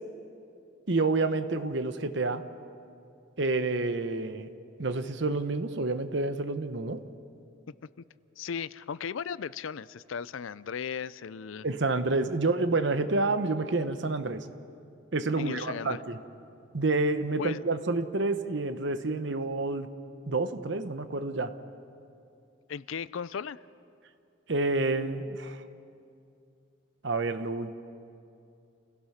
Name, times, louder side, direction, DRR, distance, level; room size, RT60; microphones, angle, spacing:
voice 1, 0.9-2.4 3.4-4.5 4.8-7.0 11.6-14.5 15.1-16.2 16.7-19.9 20.3-21.5 24.5-25.6 27.0-27.7, right 3 dB, 60° right, 10 dB, 0.9 m, -29 dB
voice 2, 8.4-11.7 15.4-16.0 17.4-17.6 22.7-23.6, left 6 dB, 75° left, 18 dB, 0.4 m, -36 dB
29.5 x 16.5 x 5.8 m, 2.6 s
head